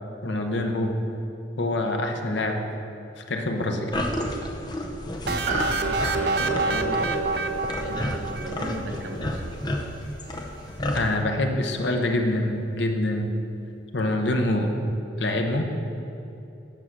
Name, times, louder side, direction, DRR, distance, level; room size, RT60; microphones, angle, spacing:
voice 1, 0.2-1.0 1.6-2.7 3.2-3.9 10.9-13.3 13.9-14.7 15.2-15.6, left 1 dB, 70° left, 3 dB, 0.9 m, -25 dB
sound 1, 3.9-11.0, left 1 dB, 20° left, 0.7 m, -31 dB
sound 2, 5.3-9.0, right 3 dB, 60° right, 0.5 m, -27 dB
Piano, 5.5-10.1 10.3-10.4, right 3 dB, 40° right, 1.0 m, -36 dB
voice 2, 6.1-7.5 7.8-9.4, right 1 dB, 85° right, 3 dB, 1.0 m, -35 dB
8.9 x 5.6 x 6.1 m, 2.9 s
head